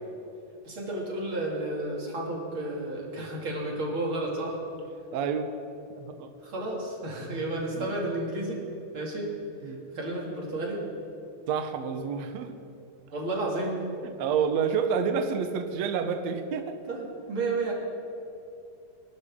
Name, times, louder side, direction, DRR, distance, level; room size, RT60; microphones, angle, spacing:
voice 1, 0.6-4.6 6.4-8.6 8.9-9.3 9.6-10.8 13.1-13.8 16.9-17.7, right 2 dB, 35° right, -2 dB, 2.8 m, -32 dB
voice 2, 5.1-5.5 6.0-6.3 7.6-7.9 9.6-9.9 11.5-12.5 14.0-16.8, right 6 dB, 80° right, 6 dB, 1.5 m, -29 dB
26.0 x 12.5 x 3.7 m, 2.7 s
omnidirectional pair, 4.4 m